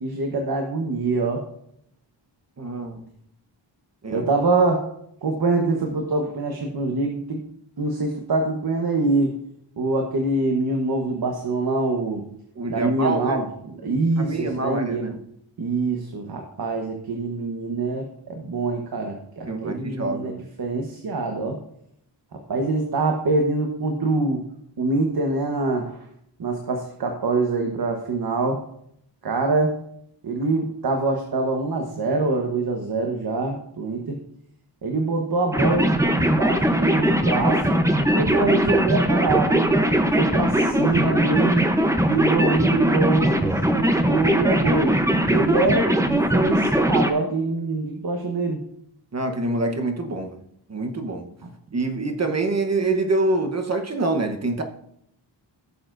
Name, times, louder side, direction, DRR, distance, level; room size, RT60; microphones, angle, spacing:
voice 1, 0.0-1.4 4.1-4.8 5.2-7.4 7.8-9.3 9.8-12.2 12.7-15.1 15.6-21.6 22.5-24.4 24.8-26.0 26.4-28.6 29.2-29.7 30.2-34.2 34.8-39.7 40.2-41.7 42.0-43.5 43.7-45.0 45.3-48.6, right 3 dB, 55° right, 1.2 m, -24 dB
voice 2, 2.6-3.1 4.0-4.3 12.6-13.4 14.2-15.2 19.5-20.5 49.1-50.4 50.7-51.3 51.7-54.6, right 2 dB, 35° right, 1.0 m, -26 dB
sound 1, 35.5-47.1, equal, 5° right, 0.7 m, -20 dB
16.0 x 6.9 x 2.6 m
wide cardioid pair, 130°, 45 cm